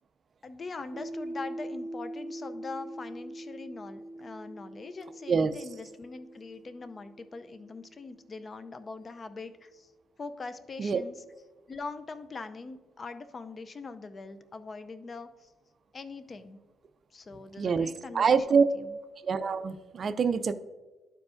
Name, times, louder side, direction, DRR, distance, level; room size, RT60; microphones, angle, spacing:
voice 1, 0.4-9.9 10.2-11.2 11.7-15.5 15.9-16.6 17.1-19.0, left 3 dB, 35° left, 11 dB, 0.5 m, -42 dB
Piano, 0.9-8.2, right 1 dB, 65° right, 0.8 m, -43 dB
voice 2, 17.6-17.9 18.1-18.6 19.2-20.5, right 5 dB, 45° right, 11 dB, 0.4 m, -25 dB
11.5 x 4.7 x 2.5 m, 1.2 s
cardioid pair, 90°, 0 cm